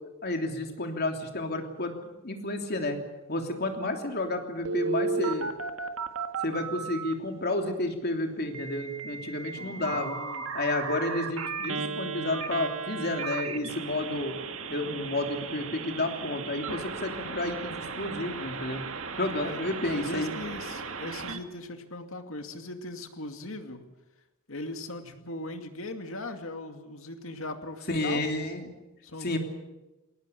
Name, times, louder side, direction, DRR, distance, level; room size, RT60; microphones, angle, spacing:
voice 1, 0.2-1.9 2.2-3.0 3.3-5.5 6.4-10.2 10.5-14.3 14.7-18.8 19.2-20.3 27.9-28.7 29.2-29.4, left 2 dB, 50° left, 4 dB, 3.2 m, -31 dB
Telephone, 4.6-7.1 8.5-21.4, right 4 dB, 70° right, 1.8 m, -35 dB
voice 2, 9.6-10.5 19.3-23.8 24.5-28.2 29.0-29.4, left 2 dB, 70° left, 6 dB, 2.4 m, -39 dB
21.5 x 18.5 x 8.6 m, 1.0 s
head